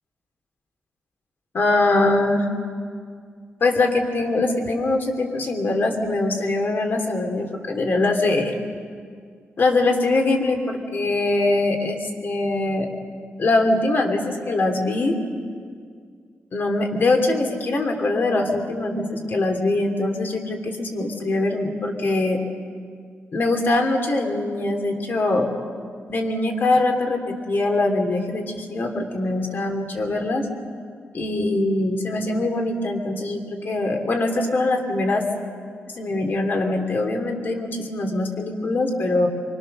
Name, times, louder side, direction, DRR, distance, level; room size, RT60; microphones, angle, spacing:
voice 1, 1.5-2.5 3.6-8.5 9.6-12.9 13.4-15.2 16.5-22.4 23.3-25.5 26.1-30.5 31.1-35.2 35.9-39.3, left 2 dB, 50° left, 3 dB, 2.8 m, -22 dB
25.5 x 23.5 x 6.6 m, 2.1 s
wide cardioid pair, 165°, 4 cm